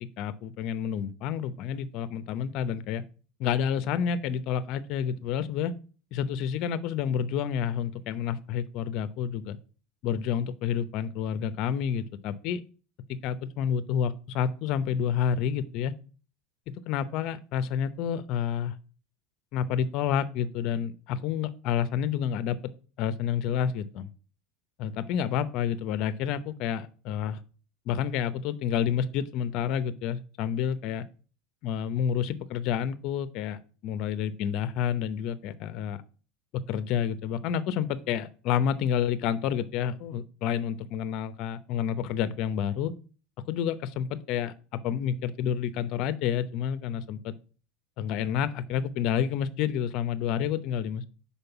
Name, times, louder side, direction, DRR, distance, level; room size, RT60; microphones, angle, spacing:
voice 1, 0.2-3.0 3.4-5.8 6.1-9.6 10.0-12.6 13.2-16.0 16.9-18.8 19.5-22.6 23.0-24.1 24.8-27.4 27.9-31.0 31.6-36.0 36.7-42.9 43.5-47.3 48.0-51.1, left 8 dB, 55° left, 14 dB, 0.7 m, -29 dB
5.3 x 4.3 x 5.7 m, 0.36 s
supercardioid pair, 105°, 0 cm